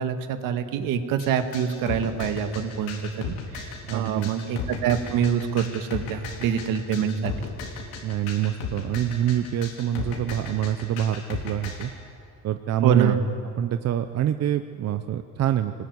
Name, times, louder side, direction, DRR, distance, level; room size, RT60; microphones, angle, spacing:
voice 1, 0.0-7.3 12.8-13.2, right 8 dB, 70° right, 8 dB, 2.0 m, -25 dB
sound 1, 1.2-11.9, left 6 dB, 85° left, 4.2 m, -35 dB
voice 2, 3.9-4.3 8.0-11.9 12.4-13.2 13.6-15.7, right 11 dB, 45° right, 9 dB, 0.9 m, -26 dB
24.5 x 19.5 x 9.7 m, 2.5 s
cardioid pair, 120°, 34 cm